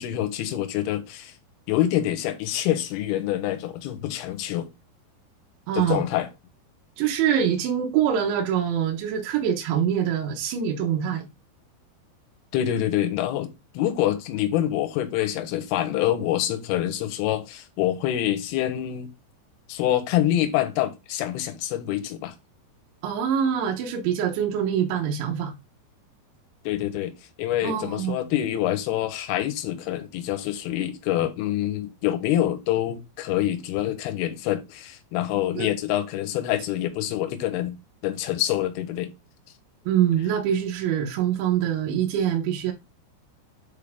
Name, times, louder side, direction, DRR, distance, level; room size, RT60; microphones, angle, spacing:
voice 1, 0.0-1.3 1.7-4.7 5.7-6.3 12.5-13.5 13.7-19.1 19.7-22.3 26.6-37.8 38.0-39.1, left 12 dB, 70° left, 2.6 m, -26 dB
voice 2, 5.7-6.0 7.0-11.3 23.0-25.5 27.6-28.2 35.6-35.7 39.9-42.7, right 9 dB, 80° right, 3.5 m, -24 dB
8.3 x 4.5 x 3.7 m
omnidirectional pair, 5.3 m